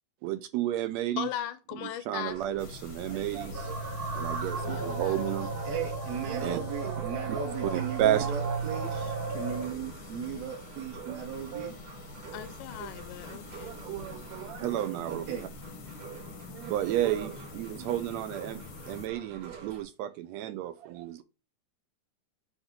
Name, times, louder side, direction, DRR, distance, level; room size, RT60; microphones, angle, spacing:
voice 1, 0.2-1.3 1.8-3.8 4.1-5.5 6.2-7.4 7.7-8.3 11.1-11.2 11.5-11.7 12.8-12.9 13.3-15.5 16.5-21.2, right 12 dB, 85° right, 1.5 m, -32 dB
voice 2, 1.2-2.4 4.6-5.6 12.3-13.7, left 11 dB, 85° left, 2.2 m, -38 dB
sound 1, 2.3-19.8, right 5 dB, 45° right, 1.4 m, -47 dB
sound 2, 2.6-19.1, left 6 dB, 65° left, 1.3 m, -47 dB
sound 3, 3.5-9.7, right 4 dB, 30° right, 1.1 m, -34 dB
voice 3, 5.6-11.7 15.1-15.5, right 7 dB, 65° right, 2.0 m, -37 dB
7.9 x 2.9 x 5.8 m
omnidirectional pair, 3.6 m